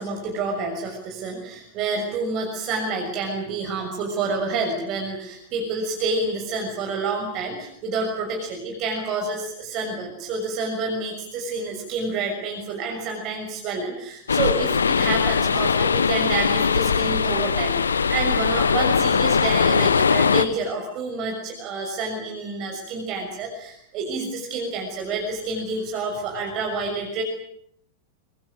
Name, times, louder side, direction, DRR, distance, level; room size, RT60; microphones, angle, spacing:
voice 1, 0.0-27.2, right 3 dB, 40° right, 2 dB, 6.3 m, -28 dB
sound 1, 14.3-20.5, left 6 dB, 70° left, 1.2 m, -20 dB
25.0 x 24.5 x 7.8 m, 0.71 s
figure-of-eight pair, 90°, 0 cm